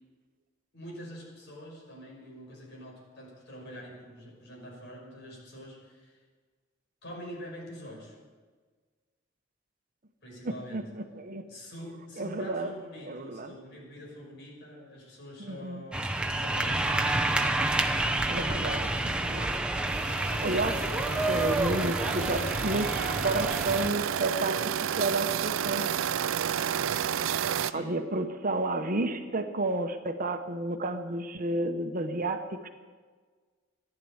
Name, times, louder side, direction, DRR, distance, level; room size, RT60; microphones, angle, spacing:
voice 1, 0.7-6.2 7.0-8.2 10.2-10.8 11.5-16.9 27.6-27.9, equal, 60° left, -2 dB, 5.8 m, -45 dB
voice 2, 10.4-11.5 12.2-12.7 13.0-13.5 15.4-15.8 18.3-19.6 20.0-25.8 27.7-32.7, right 2 dB, 45° right, 7 dB, 1.0 m, -31 dB
sound 1, 15.9-23.9, right 2 dB, 5° right, 0.9 m, -29 dB
sound 2, 19.9-27.7, right 9 dB, 85° right, 0.4 m, -31 dB
15.0 x 11.0 x 8.0 m, 1.5 s
head